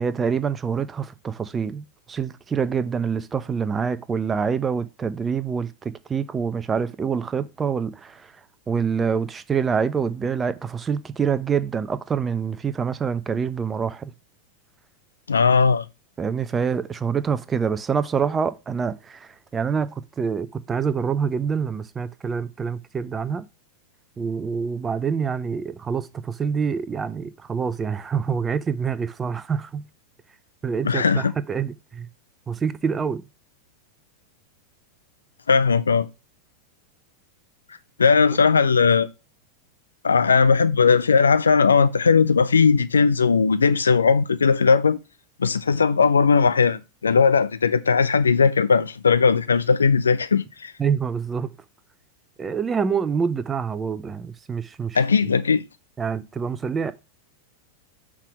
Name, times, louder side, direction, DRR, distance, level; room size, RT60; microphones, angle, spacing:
voice 1, 0.0-8.3 8.7-14.1 16.2-23.5 24.2-29.8 30.6-32.1 32.5-33.2 50.8-51.5 52.4-55.0 56.0-56.9, right 6 dB, 20° right, 0.5 m, -26 dB
voice 2, 15.3-15.9 30.8-31.3 35.5-36.1 38.0-39.1 40.0-45.0 45.4-50.7 54.9-55.6, left 5 dB, 75° left, 0.5 m, -18 dB
5.8 x 3.6 x 6.0 m
figure-of-eight pair, 90°, 0 cm